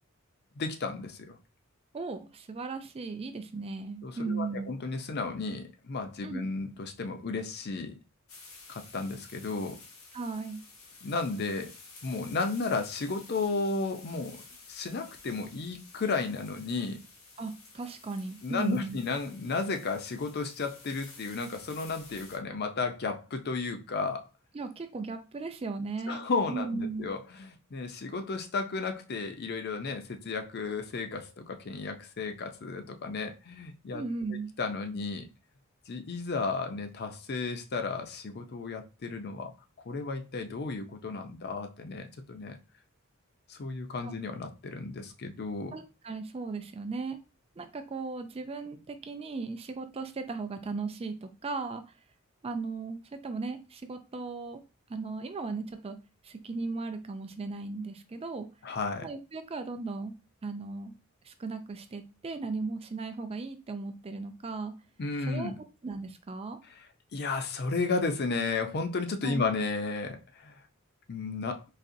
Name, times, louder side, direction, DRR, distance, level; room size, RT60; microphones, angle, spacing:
voice 1, 0.6-1.4 4.0-8.0 8.7-9.8 11.0-11.7 12.0-14.4 14.7-17.0 18.4-24.2 26.1-34.0 34.3-35.3 35.9-39.5 39.9-42.6 43.5-45.8 58.6-59.1 65.0-65.5 67.1-70.6 71.1-71.6, left 4 dB, 50° left, 0.5 m, -33 dB
voice 2, 1.9-4.7 6.2-6.5 10.1-10.6 17.4-19.0 24.5-26.2 26.5-27.1 33.9-34.5 44.0-44.2 45.7-47.2 47.6-51.8 52.4-54.6 54.9-56.0 56.2-58.5 59.0-60.1 60.4-60.9 61.2-64.7 65.3-65.5 65.8-66.6 69.2-69.5, right 3 dB, 30° right, 0.4 m, -36 dB
sound 1, 8.3-22.4, left 4 dB, 85° left, 1.1 m, -52 dB
4.1 x 2.8 x 2.6 m
head